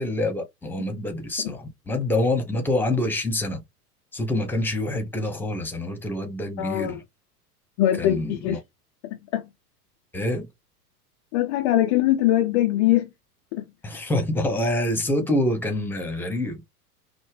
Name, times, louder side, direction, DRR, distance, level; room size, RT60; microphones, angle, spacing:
voice 1, 0.0-3.6 4.1-7.0 8.0-8.6 10.1-10.5 13.8-16.7, left 1 dB, 5° left, 0.9 m, -26 dB
voice 2, 6.6-7.0 7.8-8.6 9.0-9.4 11.3-13.1 13.5-13.6, left 13 dB, 20° left, 0.3 m, -22 dB
5.5 x 2.1 x 3.2 m
figure-of-eight pair, 95°, 47 cm